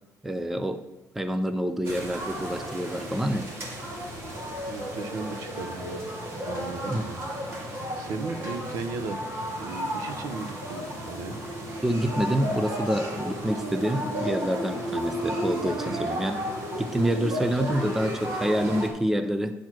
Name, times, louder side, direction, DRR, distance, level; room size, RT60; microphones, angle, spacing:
voice 1, 0.2-0.8 1.1-3.5 6.9-7.0 11.8-16.4 16.8-19.5, equal, 5° right, 10 dB, 0.4 m, -27 dB
sound 1, 1.8-18.9, equal, 40° right, 2.1 m, -33 dB
voice 2, 4.7-6.1 6.5-7.3 7.6-9.2 9.6-11.4 15.9-16.1, right 4 dB, 65° right, 10 dB, 0.8 m, -36 dB
10.0 x 4.6 x 6.0 m, 0.98 s
cardioid pair, 170°, 6 cm